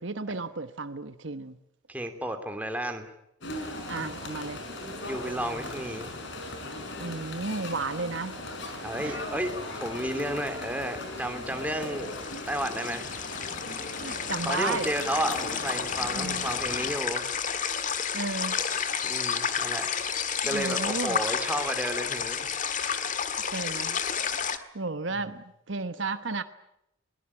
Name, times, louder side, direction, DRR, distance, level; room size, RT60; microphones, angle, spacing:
voice 1, 0.0-1.6 3.9-4.6 7.0-8.4 9.0-9.3 13.9-14.9 16.1-16.5 18.1-18.6 20.4-21.2 23.5-24.0 24.4-26.4, right 3 dB, 60° right, 10 dB, 1.2 m, -33 dB
voice 2, 1.9-3.0 5.0-6.1 8.8-12.1 12.5-13.1 14.4-17.2 19.0-19.9 20.4-22.5 25.1-25.2, right 1 dB, 5° right, 6 dB, 3.0 m, -32 dB
sound 1, 3.4-16.9, left 2 dB, 55° left, 5.5 m, -38 dB
sound 2, 11.8-24.6, left 7 dB, 40° left, 1.7 m, -31 dB
22.0 x 21.0 x 9.9 m, 0.80 s
head